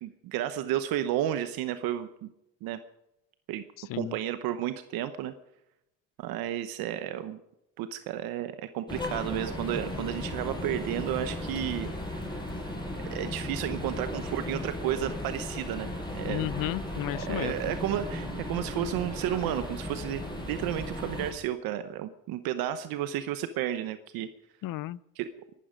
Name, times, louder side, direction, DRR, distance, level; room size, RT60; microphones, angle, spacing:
voice 1, 0.0-2.3 2.6-2.8 3.5-3.6 3.9-5.3 6.2-7.4 7.8-11.9 13.0-15.9 16.1-16.5 17.3-20.2 20.5-24.3 25.2-25.3, right 11 dB, 85° right, 11 dB, 0.9 m, -32 dB
sound 1, 8.9-21.3, left 1 dB, 10° left, 7.2 m, -36 dB
voice 2, 16.3-17.7 24.6-25.0, left 16 dB, 70° left, 21 dB, 0.6 m, -33 dB
21.5 x 12.0 x 5.1 m, 0.90 s
cardioid pair, 90°, 35 cm